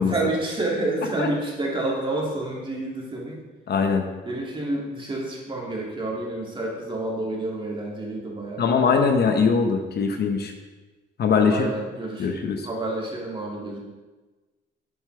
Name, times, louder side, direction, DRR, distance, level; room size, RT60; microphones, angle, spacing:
voice 1, 0.1-3.4 4.2-8.6 11.5-12.3 12.6-13.8, right 2 dB, 25° right, -3 dB, 2.4 m, -29 dB
voice 2, 3.7-4.1 8.6-10.5 11.2-11.7 12.2-12.7, left 5 dB, 55° left, 5 dB, 0.9 m, -21 dB
8.0 x 7.3 x 3.3 m, 1.2 s
cardioid pair, 90°, 20 cm